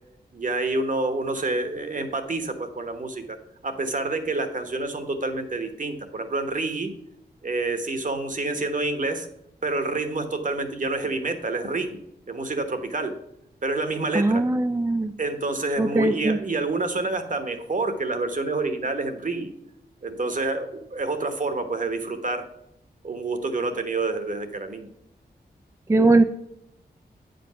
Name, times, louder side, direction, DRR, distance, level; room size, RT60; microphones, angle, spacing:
voice 1, 0.3-3.4 3.6-6.9 7.4-9.3 9.6-12.0 12.3-13.1 13.6-14.4 15.2-19.5 20.0-22.4 23.0-24.9, right 3 dB, 50° right, 7 dB, 1.2 m, -28 dB
voice 2, 14.1-15.1 15.8-16.4 25.9-26.2, right 2 dB, 15° right, 8 dB, 0.4 m, -20 dB
8.7 x 5.2 x 5.7 m, 0.80 s
wide cardioid pair, 70°, 17 cm